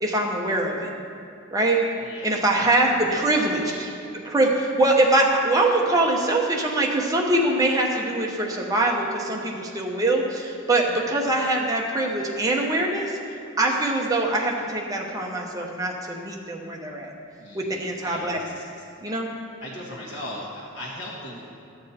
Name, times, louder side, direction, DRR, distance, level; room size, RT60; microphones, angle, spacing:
voice 1, 0.0-0.9 1.5-1.8 2.2-3.6 4.2-13.2 13.6-17.1 17.5-18.4 19.0-19.3, right 2 dB, 20° right, -1 dB, 1.0 m, -23 dB
voice 2, 2.0-2.7 3.3-3.8 17.4-18.6 19.6-21.4, left 1 dB, 75° left, -7 dB, 1.5 m, -38 dB
12.0 x 7.3 x 4.3 m, 2.6 s
head